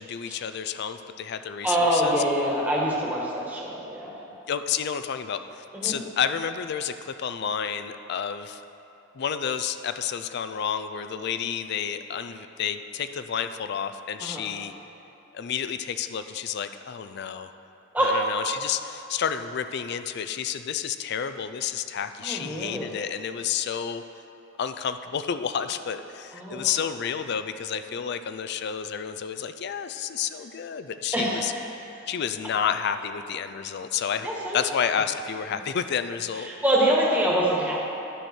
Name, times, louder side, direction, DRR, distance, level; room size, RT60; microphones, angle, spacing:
voice 1, 0.0-2.2 4.5-8.6 9.1-14.7 15.3-17.5 18.0-24.0 24.6-31.5 32.1-34.3 34.5-36.5, left 7 dB, 55° left, 10 dB, 0.4 m, -30 dB
voice 2, 1.6-4.1 5.7-5.9 14.2-14.4 17.9-18.2 22.2-22.8 26.3-26.7 31.1-31.7 34.2-34.6 36.4-37.8, right 1 dB, 10° right, -4 dB, 1.3 m, -25 dB
11.0 x 6.4 x 4.4 m, 2.9 s
head